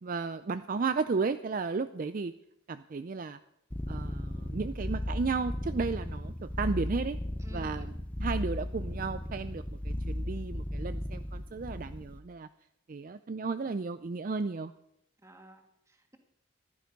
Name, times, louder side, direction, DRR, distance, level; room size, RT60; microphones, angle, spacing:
voice 1, 0.0-2.3 2.7-3.4 3.9-7.2 7.5-12.5 12.9-14.7, right 4 dB, 40° right, 11 dB, 0.4 m, -34 dB
sound 1, 3.7-12.2, left 1 dB, 5° left, 0.7 m, -35 dB
voice 2, 7.4-7.9 15.2-16.2, right 2 dB, 15° right, 4 dB, 1.8 m, -54 dB
14.5 x 12.0 x 5.3 m, 0.79 s
head